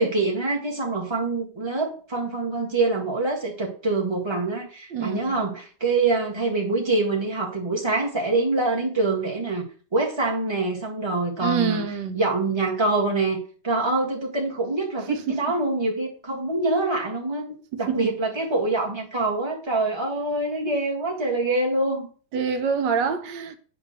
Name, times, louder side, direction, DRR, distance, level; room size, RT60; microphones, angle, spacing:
voice 1, 0.0-9.6 9.9-11.8 12.1-13.4 13.6-22.1, right 2 dB, 15° right, 1.7 m, -25 dB
voice 2, 4.9-5.4 11.4-12.2 15.1-15.4 17.7-18.1 22.3-23.6, right 6 dB, 85° right, 1.5 m, -26 dB
8.7 x 3.3 x 6.5 m
omnidirectional pair, 1.9 m